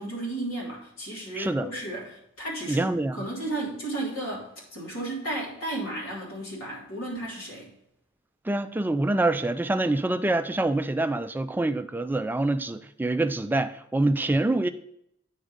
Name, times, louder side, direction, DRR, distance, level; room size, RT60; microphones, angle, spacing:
voice 1, 0.0-7.7, right 1 dB, 85° left, 3.1 m, -34 dB
voice 2, 1.3-1.7 2.7-3.2 8.5-14.7, right 2 dB, 10° right, 0.3 m, -26 dB
8.9 x 3.8 x 6.4 m
head